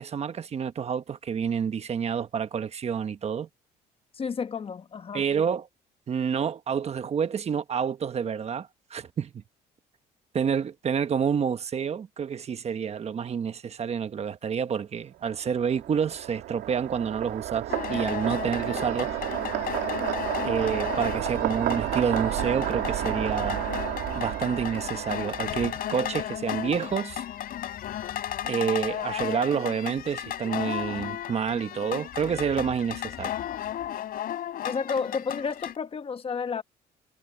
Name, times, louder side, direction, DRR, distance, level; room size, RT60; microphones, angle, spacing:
voice 1, 0.0-3.5 5.1-5.7 6.1-9.3 10.3-19.1 20.4-23.6 24.1-27.2 28.4-33.3, right 7 dB, 40° right, 1.2 m, -28 dB
voice 2, 4.1-5.2 34.6-36.6, left 5 dB, 35° left, 1.2 m, -31 dB
sound 1, 15.3-26.0, right 14 dB, 80° right, 2.5 m, -31 dB
sound 2, 17.7-35.8, left 11 dB, 60° left, 3.3 m, -34 dB
cardioid pair, 110°, 17 cm